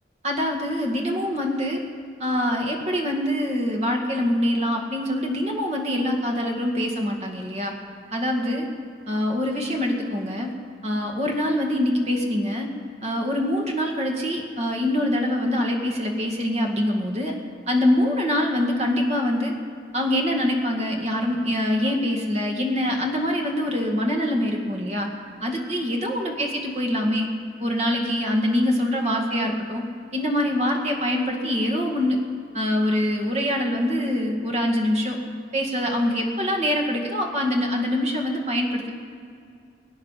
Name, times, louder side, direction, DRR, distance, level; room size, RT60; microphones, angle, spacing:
voice 1, 0.2-1.8 2.2-7.7 8.1-8.7 9.1-10.5 10.8-12.7 13.0-17.4 17.7-19.5 19.9-25.1 25.4-27.3 27.6-29.8 30.1-32.2 32.5-35.2 35.5-38.9, left 1 dB, 40° right, 1 dB, 1.9 m, -24 dB
23.5 x 9.3 x 5.7 m, 2.3 s
head